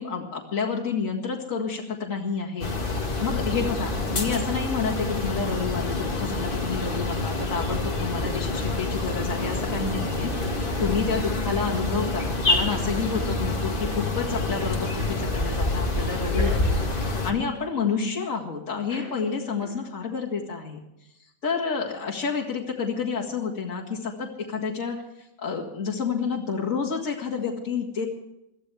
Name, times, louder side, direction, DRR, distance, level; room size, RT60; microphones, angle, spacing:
voice 1, 0.0-2.7 3.2-20.8 21.4-25.0 25.4-28.1, left 5 dB, 60° left, -5 dB, 2.2 m, -29 dB
sound 1, 2.6-17.3, left 2 dB, 40° left, 1.8 m, -27 dB
sound 2, 10.4-11.2 12.4-13.3 14.6-15.5 15.7-15.9 16.2-18.0 18.9-19.1 19.6-19.8, equal, 5° right, 7.4 m, -40 dB
22.0 x 14.5 x 3.4 m, 0.86 s
omnidirectional pair, 1.5 m